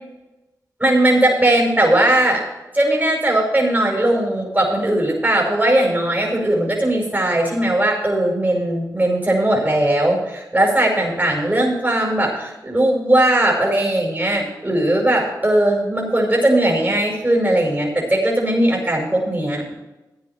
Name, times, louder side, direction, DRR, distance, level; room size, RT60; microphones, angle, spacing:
voice 1, 0.8-2.4 2.7-19.7, right 1 dB, 25° right, -1 dB, 5.4 m, -18 dB
14.0 x 9.7 x 4.5 m, 1.0 s
cardioid pair, 45°, 7 cm